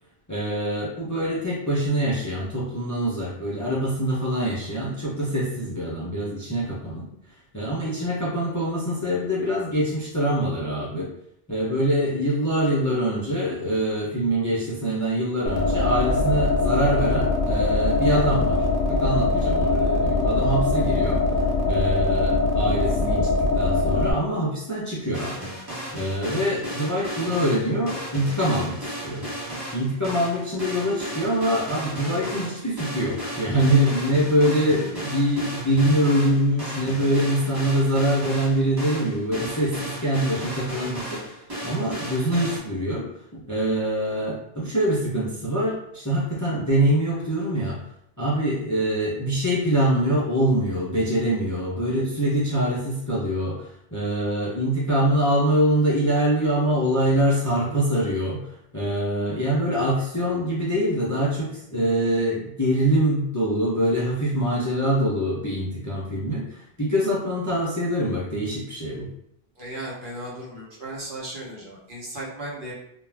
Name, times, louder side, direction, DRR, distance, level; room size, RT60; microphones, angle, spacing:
voice 1, 0.3-7.1 7.5-11.1 11.5-21.2 21.7-25.4 25.9-29.2 29.7-41.4 41.6-43.1 43.3-47.8 48.2-58.5 58.7-69.1, right 1 dB, 25° left, -6 dB, 0.4 m, -24 dB
sound 1, 15.5-24.1, left 3 dB, 65° left, 0.7 m, -22 dB
sound 2, 25.1-42.6, right 1 dB, 25° right, 0.9 m, -34 dB
voice 2, 69.6-72.7, right 1 dB, 60° right, -5 dB, 1.0 m, -36 dB
2.4 x 2.1 x 3.2 m, 0.76 s
omnidirectional pair, 1.0 m